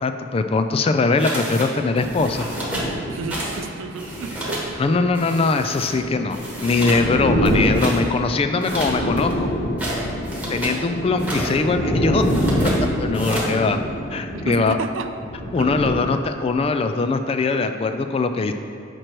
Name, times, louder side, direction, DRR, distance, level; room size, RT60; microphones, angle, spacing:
voice 1, 0.0-2.5 4.8-9.5 10.5-12.2 12.6-12.7 13.0-13.8 14.1-14.8 15.5-18.5, left 3 dB, 30° left, 8 dB, 0.3 m, -21 dB
sound 1, 1.2-1.7 2.0-2.9 3.3-3.6 3.9-4.7 5.1-5.9 6.3-7.1 7.4-8.0 8.6-10.8 11.1-11.5 12.2-12.8 13.1-13.5, right 1 dB, 5° right, 1.1 m, -30 dB
sound 2, 1.8-15.9, equal, 60° left, 1.0 m, -26 dB
voice 2, 3.0-5.1 13.2-13.4 14.3-15.1 15.6-15.7, right 4 dB, 80° right, 9 dB, 0.4 m, -31 dB
6.5 x 4.4 x 4.5 m, 2.4 s
head